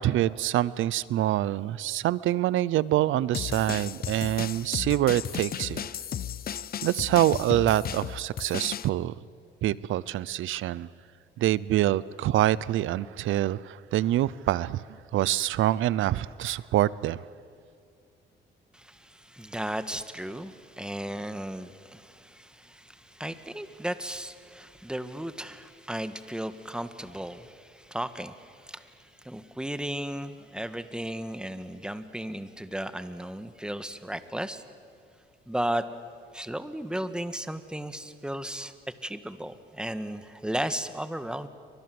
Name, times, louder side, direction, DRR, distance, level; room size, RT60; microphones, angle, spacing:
voice 1, 0.0-5.8 6.8-9.1 9.6-10.9 11.4-14.8 15.1-17.2, right 14 dB, 80° right, 20 dB, 0.7 m, -25 dB
sound 1, 3.3-8.9, left 9 dB, 50° left, 0.7 m, -35 dB
voice 2, 18.7-34.6 35.5-35.8 36.3-38.7 39.0-41.5, right 1 dB, 5° right, 11 dB, 1.7 m, -35 dB
30.0 x 24.5 x 7.9 m, 2.2 s
cardioid pair, 90°, 20 cm